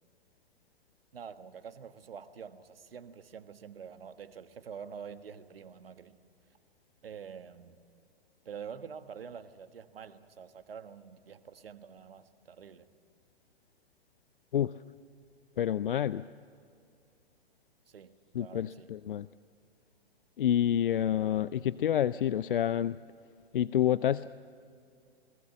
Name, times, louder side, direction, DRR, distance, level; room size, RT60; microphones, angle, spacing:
voice 1, 1.1-6.2 7.0-7.8 8.4-12.9 17.9-18.9, right 7 dB, 65° right, 10 dB, 1.5 m, -46 dB
voice 2, 15.6-16.2 18.3-19.3 20.4-23.0 23.5-24.3, left 10 dB, 55° left, 17 dB, 0.5 m, -28 dB
29.0 x 20.0 x 7.3 m, 2.4 s
figure-of-eight pair, 110°, 31 cm